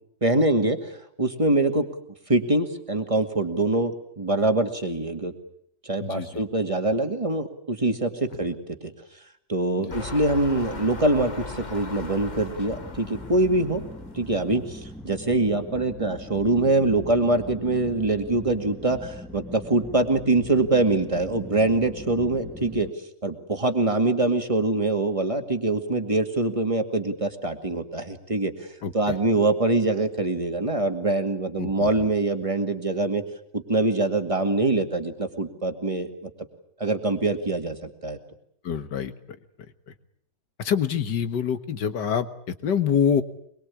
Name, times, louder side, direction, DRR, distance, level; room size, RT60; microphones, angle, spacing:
voice 1, 0.2-1.9 2.3-5.3 5.8-8.9 9.5-13.8 14.1-22.9 23.2-28.5 28.9-33.2 33.5-36.1 36.8-38.2, right 2 dB, 15° right, 6 dB, 2.1 m, -24 dB
voice 2, 6.0-6.4 9.8-10.0 28.8-29.2 31.6-31.9 38.6-39.4 40.6-43.2, left 7 dB, 70° left, 10 dB, 2.0 m, -26 dB
sound 1, 9.9-14.9 15.5-15.6, left 3 dB, 25° left, 1.4 m, -39 dB
sound 2, 12.7-22.9, left 1 dB, ahead, 1.3 m, -41 dB
24.0 x 22.5 x 8.5 m, 0.68 s
omnidirectional pair, 2.0 m